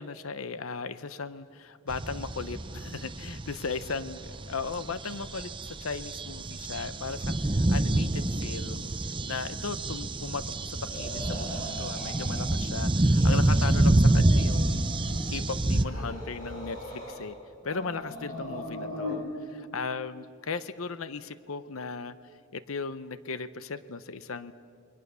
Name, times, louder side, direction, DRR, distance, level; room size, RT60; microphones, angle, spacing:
voice 1, 0.0-4.2 4.5-14.9 15.3-17.4 17.6-22.2 22.5-24.5, left 4 dB, 85° left, 14 dB, 0.8 m, -37 dB
sound 1, 1.9-15.8, right 1 dB, 25° right, 0.7 m, -27 dB
sound 2, 10.9-12.5 12.8-13.7 13.9-15.3 15.7-17.3 17.6-19.2, left 1 dB, 45° left, 6.7 m, -40 dB
28.5 x 23.0 x 6.9 m, 2.3 s
head